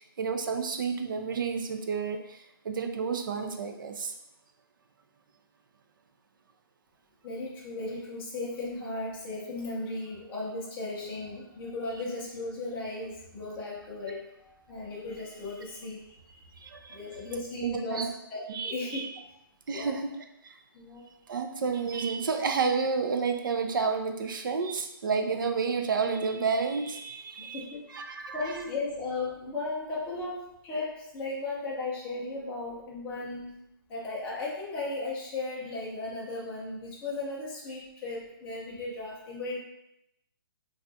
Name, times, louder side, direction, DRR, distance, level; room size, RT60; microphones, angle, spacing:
voice 1, 0.0-4.1 16.6-17.0 17.6-18.1 18.5-19.1 19.7-20.1 20.4-20.6 21.3-28.5, right 5 dB, 60° right, 6 dB, 0.4 m, -30 dB
voice 2, 7.2-16.6 16.9-19.0 19.7-20.0 20.7-21.0 27.4-28.0 28.3-33.5 33.9-39.6, left 2 dB, 10° left, -6 dB, 0.5 m, -36 dB
3.4 x 2.4 x 2.6 m, 0.81 s
hypercardioid pair, 165°, 12 cm